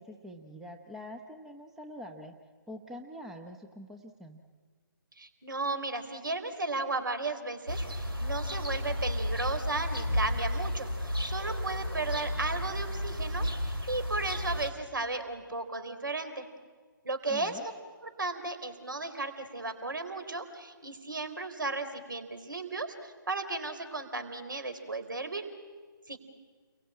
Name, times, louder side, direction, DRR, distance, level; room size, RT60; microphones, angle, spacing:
voice 1, 0.0-2.3 2.7-4.4 17.3-17.6, left 1 dB, 5° right, 3 dB, 0.9 m, -45 dB
voice 2, 5.2-16.5 17.0-17.7 18.0-25.5 26.1-26.2, right 3 dB, 65° right, 9 dB, 4.0 m, -35 dB
sound 1, 7.7-14.7, equal, 85° right, 3.7 m, -32 dB
29.5 x 22.5 x 8.8 m, 1.5 s
figure-of-eight pair, 140°, 12 cm